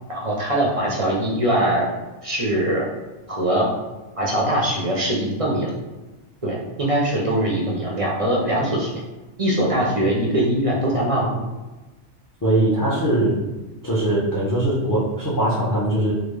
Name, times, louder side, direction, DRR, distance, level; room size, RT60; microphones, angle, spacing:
voice 1, 0.1-1.9 2.2-2.9 3.3-3.7 4.2-5.7 6.4-8.9 9.4-11.3, right 1 dB, 40° right, -3 dB, 0.5 m, -22 dB
voice 2, 12.4-13.4 13.8-16.1, right 1 dB, 20° left, -7 dB, 0.6 m, -21 dB
3.5 x 2.3 x 3.2 m, 1.1 s
omnidirectional pair, 1.3 m